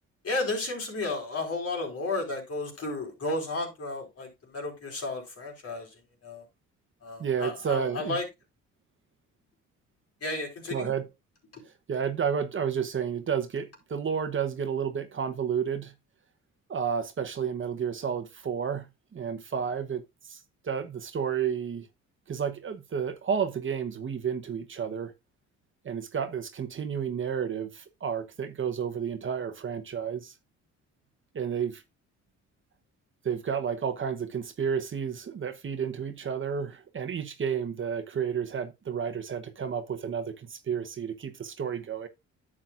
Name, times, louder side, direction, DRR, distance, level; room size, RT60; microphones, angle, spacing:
voice 1, 0.2-6.5 7.0-8.2 10.2-10.9 11.5-11.6, left 2 dB, 55° left, 4.4 m, -33 dB
voice 2, 7.2-8.2 10.7-11.0 11.9-15.9 16.7-20.0 20.3-21.9 22.3-25.1 25.8-30.3 31.3-31.8 33.2-42.1, right 7 dB, 40° right, 1.0 m, -31 dB
10.5 x 7.5 x 2.5 m
cardioid pair, 90°, 30 cm